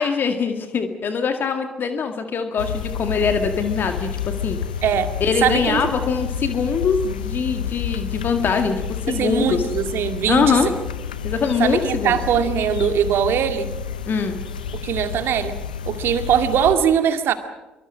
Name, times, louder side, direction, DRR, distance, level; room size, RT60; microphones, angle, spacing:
voice 1, 0.0-4.6 5.2-9.6 10.3-10.7 11.2-12.2 14.1-14.4, left 5 dB, 50° left, 6 dB, 2.0 m, -22 dB
sound 1, 2.6-16.8, left 8 dB, 90° left, 0.9 m, -30 dB
voice 2, 4.8-5.1 5.4-5.8 9.1-10.7 11.6-13.7 14.8-15.6 15.9-17.3, right 8 dB, 60° right, 8 dB, 2.2 m, -21 dB
24.5 x 24.0 x 6.3 m, 1.0 s
hypercardioid pair, 50°, 4 cm